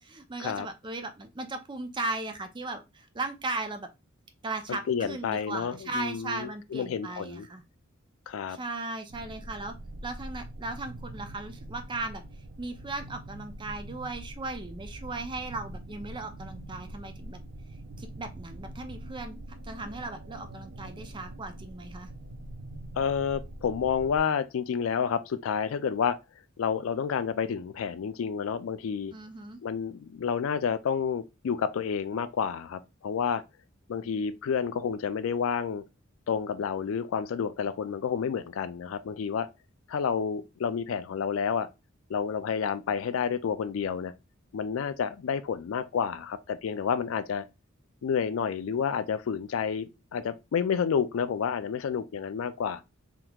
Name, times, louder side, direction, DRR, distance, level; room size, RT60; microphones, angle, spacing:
voice 1, 0.0-3.9 4.4-7.6 8.5-9.7 10.0-12.2 12.6-17.4 18.0-22.1 29.1-29.6, right 2 dB, 25° right, 0.4 m, -37 dB
voice 2, 4.7-7.5 8.3-8.6 23.0-26.2 26.6-29.1 29.6-33.4 33.9-35.8 36.3-39.5 39.9-41.7 42.1-44.1 44.5-47.5 48.0-52.8, left 7 dB, 75° left, 0.3 m, -30 dB
sound 1, 9.1-24.2, right 1 dB, 75° right, 0.5 m, -44 dB
3.5 x 2.9 x 2.3 m
head